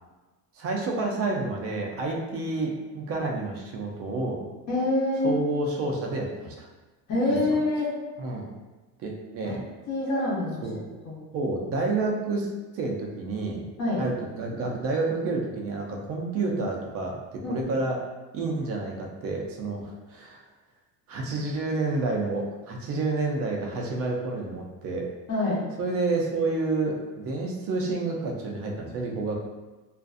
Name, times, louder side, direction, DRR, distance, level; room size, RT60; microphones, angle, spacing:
voice 1, 0.6-4.4 5.2-6.7 7.3-7.4 8.2-8.5 9.0-9.6 10.6-10.8 11.3-12.5 12.7-13.7 14.0-18.0 18.3-20.4 21.1-25.1 25.8-29.4, right 3 dB, 40° right, 0 dB, 0.4 m, -29 dB
voice 2, 4.7-5.4 7.1-7.9 9.4-10.6 11.0-11.2 13.8-14.0 17.4-17.5 25.3-25.6, left 2 dB, 40° left, -8 dB, 0.9 m, -26 dB
2.5 x 2.4 x 2.4 m, 1.2 s
cardioid pair, 170°, 37 cm